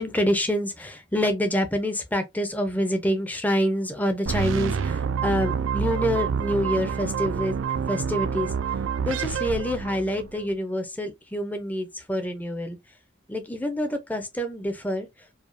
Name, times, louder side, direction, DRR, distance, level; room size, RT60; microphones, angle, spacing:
voice 1, 0.0-7.6 7.9-8.5 9.0-12.8 13.3-15.1, equal, 10° left, 0.6 m, -26 dB
sound 1, 4.3-10.4, right 6 dB, 75° right, 0.4 m, -28 dB
4.9 x 2.3 x 2.5 m
head